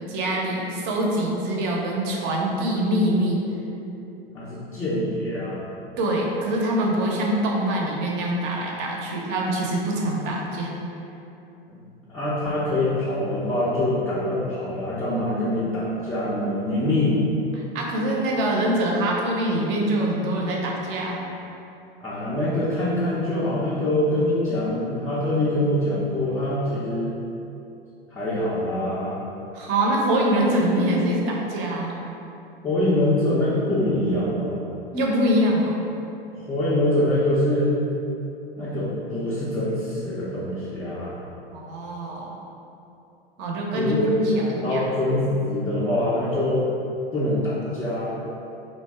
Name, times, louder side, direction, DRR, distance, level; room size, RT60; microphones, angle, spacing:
voice 1, 0.0-3.5 6.0-10.7 17.7-21.2 29.5-31.9 34.9-35.8 41.5-42.3 43.4-44.8, right 1 dB, 40° right, -1 dB, 0.6 m, -24 dB
voice 2, 4.3-5.6 11.7-11.8 12.1-17.2 22.0-27.2 28.1-29.2 32.6-34.6 36.3-37.7 38.6-41.1 43.7-44.1 44.4-46.6 47.1-48.1, left 1 dB, 10° left, -11 dB, 0.3 m, -24 dB
2.6 x 2.2 x 3.2 m, 2.8 s
figure-of-eight pair, 90°, 30 cm